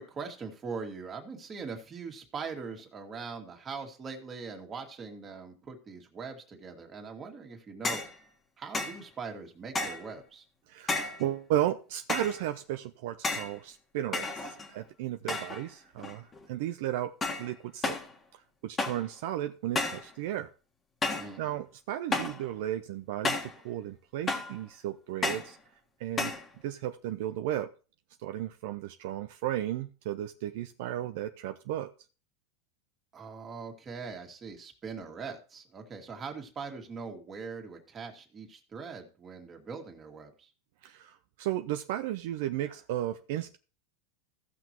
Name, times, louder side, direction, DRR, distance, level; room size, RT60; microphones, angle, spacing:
voice 1, 0.0-8.0 8.6-10.4 21.2-21.6 33.1-40.5, right 5 dB, 25° right, 3 dB, 2.1 m, -41 dB
sound 1, 7.8-8.1 8.7-9.0 9.7-10.1 10.9-11.2 12.1-12.4 13.2-13.6 14.1-14.8 15.3-15.7 16.0-16.4 17.2-17.5 17.8-18.1 18.8-19.1 19.7-20.1 21.0-21.3 22.1-22.4 23.2-23.6 24.3-24.6 25.2-25.5 26.2-26.5, left 3 dB, 20° left, 1.6 m, -32 dB
voice 2, 10.7-18.0 18.3-20.5 21.4-25.6 26.0-26.3 26.6-27.7 28.2-31.9 40.8-43.6, right 12 dB, 65° right, 8 dB, 0.6 m, -34 dB
16.0 x 6.0 x 3.0 m, 0.35 s
supercardioid pair, 135°, 0 cm